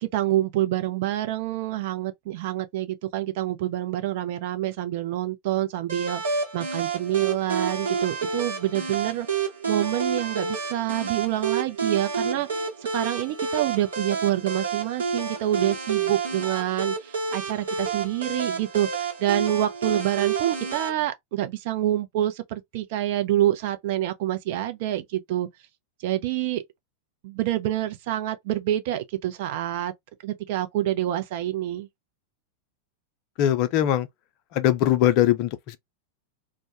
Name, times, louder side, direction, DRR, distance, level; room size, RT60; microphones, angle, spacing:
voice 1, 0.0-12.5 12.9-25.5 26.0-26.6 27.2-29.9 30.2-31.9, right 13 dB, 50° right, 0.5 m, -27 dB
sound 1, 5.9-20.9, right 5 dB, 65° right, 1.0 m, -29 dB
voice 2, 33.4-34.1 34.5-35.8, left 11 dB, 40° left, 0.4 m, -21 dB
2.1 x 2.1 x 2.8 m
figure-of-eight pair, 90°, 0 cm